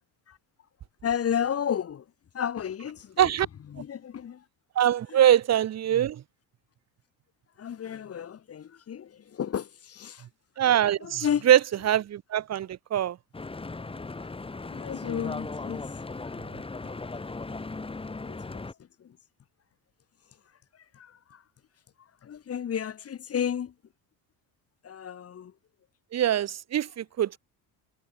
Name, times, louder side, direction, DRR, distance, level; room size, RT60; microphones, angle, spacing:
voice 1, 1.0-2.1 2.3-3.3 3.7-4.5 5.1-5.2 7.6-10.3 11.0-11.5 14.2-15.9 16.5-17.1 18.2-19.2 20.7-21.4 22.0-23.7 24.8-25.5, left 8 dB, 35° left, 7.8 m, -33 dB
voice 2, 4.8-6.2 10.6-13.2 26.1-27.4, right 11 dB, 40° right, 2.2 m, -23 dB
Stream / Boat Water vehicle, 13.3-18.7, left 3 dB, 15° left, 6.9 m, -37 dB
cardioid pair, 145°, 40 cm